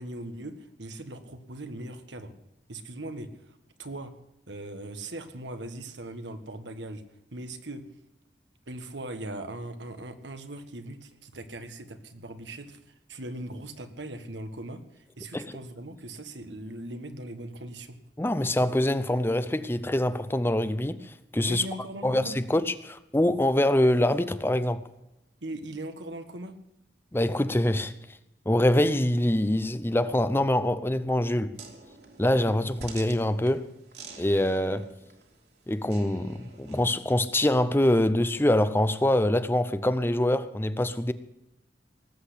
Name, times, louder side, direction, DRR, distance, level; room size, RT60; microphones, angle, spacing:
voice 1, 0.0-2.3 2.7-4.1 4.5-7.0 7.3-7.8 8.7-18.0 21.5-22.3 25.4-26.6, right 1 dB, 90° right, 1.6 m, -39 dB
voice 2, 18.2-21.6 22.0-24.8 27.1-27.9 28.5-31.6 32.2-33.7 34.2-34.9 35.7-41.1, left 1 dB, 15° left, 0.6 m, -24 dB
sound 1, 31.5-37.0, right 4 dB, 65° right, 3.0 m, -48 dB
19.0 x 8.2 x 8.4 m
head